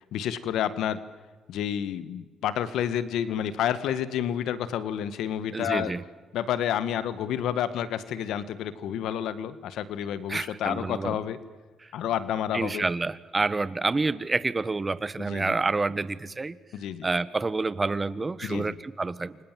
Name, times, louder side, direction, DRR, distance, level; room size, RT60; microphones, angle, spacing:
voice 1, 0.1-1.0 1.5-5.9 6.3-11.4 11.9-12.8 15.2-15.6 16.7-17.1 18.4-18.8, left 10 dB, 80° left, 14 dB, 1.6 m, -29 dB
voice 2, 5.5-6.0 10.3-11.2 12.5-16.6 17.0-19.4, right 3 dB, 25° right, 16 dB, 1.3 m, -28 dB
29.0 x 25.0 x 7.6 m, 1.3 s
cardioid pair, 90°, 0 cm